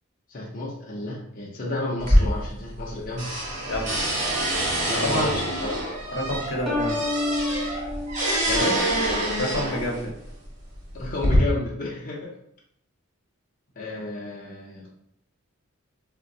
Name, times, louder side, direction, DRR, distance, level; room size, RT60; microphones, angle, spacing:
voice 1, 0.3-3.3 4.9-5.8 8.5-8.8 10.9-12.3 13.8-14.9, left 2 dB, 40° left, -4 dB, 0.6 m, -31 dB
sound 1, 2.0-2.9 3.2-10.0 10.8-11.4, equal, 35° right, 1.0 m, -25 dB
voice 2, 3.6-3.9 5.0-5.3 6.1-7.0 9.4-10.1, left 1 dB, 75° left, -1 dB, 0.8 m, -28 dB
sound 2, 6.7-9.3, left 2 dB, 5° right, 0.6 m, -30 dB
3.8 x 2.1 x 2.6 m, 0.72 s
head